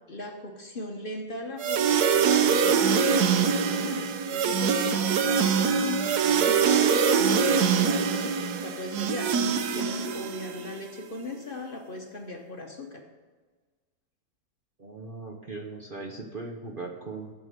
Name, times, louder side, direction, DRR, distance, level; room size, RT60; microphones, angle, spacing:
voice 1, 0.0-8.3 8.6-13.0, left 2 dB, 40° left, 3 dB, 1.0 m, -38 dB
sound 1, 1.6-10.7, right 6 dB, 80° right, 1.3 m, -24 dB
voice 2, 14.8-17.3, right 3 dB, 40° right, 2 dB, 0.9 m, -39 dB
9.3 x 7.4 x 6.7 m, 1.4 s
omnidirectional pair, 1.6 m